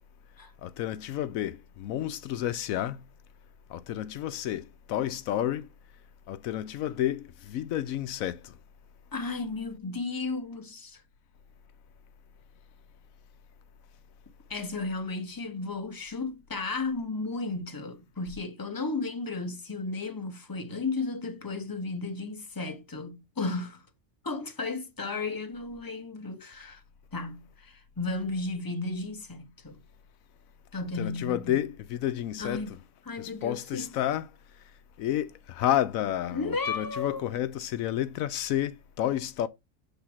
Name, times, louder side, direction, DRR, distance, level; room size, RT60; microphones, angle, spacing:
voice 1, 0.6-3.0 3.7-5.7 6.3-8.5 31.0-32.6 33.2-34.3 35.0-39.5, left 12 dB, 80° left, 1.0 m, -30 dB
voice 2, 9.1-11.0 14.5-23.9 24.2-26.8 27.1-29.8 30.7-31.6 32.4-32.7 33.0-33.9 36.3-37.2, left 3 dB, 15° left, 1.1 m, -34 dB
7.9 x 3.4 x 5.8 m
omnidirectional pair, 1.4 m